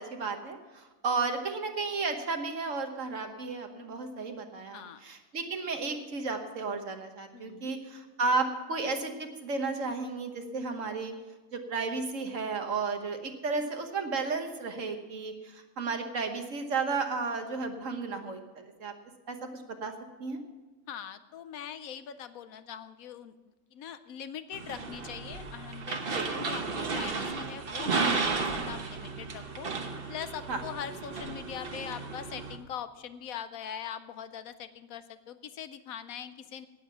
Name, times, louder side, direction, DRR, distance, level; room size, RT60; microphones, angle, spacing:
voice 1, 0.0-11.1 11.5-18.9 19.3-19.9 20.2-20.4 26.1-26.3 30.5-30.6, right 4 dB, 55° right, 5 dB, 1.6 m, -33 dB
voice 2, 7.3-7.7 20.9-23.3 23.7-29.7 30.1-36.7, left 8 dB, 70° left, 12 dB, 1.0 m, -42 dB
sound 1, 24.5-32.6, right 4 dB, 40° right, 1.1 m, -34 dB
18.0 x 7.4 x 5.9 m, 1.2 s
omnidirectional pair, 1.6 m